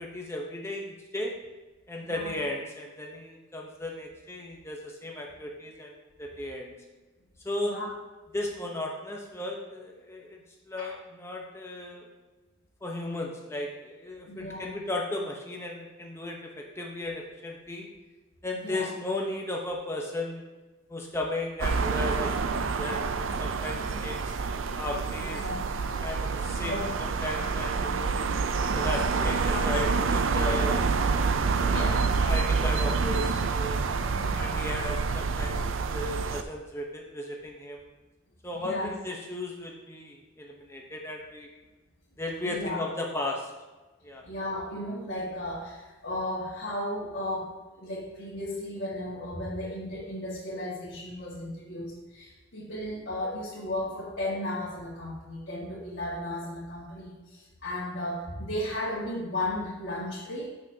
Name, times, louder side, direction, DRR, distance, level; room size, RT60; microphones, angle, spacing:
voice 1, 0.0-1.3 1.9-5.9 6.2-6.7 7.4-7.8 8.3-12.1 12.8-17.9 18.4-20.4 20.9-24.3 24.8-25.4 26.0-26.7 27.2-28.1 28.7-30.8 31.6-33.8 34.3-37.9 38.4-41.5 42.2-43.5 44.0-44.2, left 1 dB, 15° left, -1 dB, 0.9 m, -35 dB
voice 2, 2.0-2.3 7.6-7.9 10.8-10.9 14.3-14.7 18.5-18.9 23.7-24.0 25.2-25.6 26.4-26.9 29.0-29.9 30.2-30.6 31.7-32.1 34.0-34.4 38.6-38.9 42.4-42.8 44.2-60.5, left 1 dB, 60° left, -7 dB, 1.8 m, -35 dB
sound 1, 21.6-36.4, right 4 dB, 80° right, 0.5 m, -27 dB
14.0 x 6.3 x 2.8 m, 1.2 s
head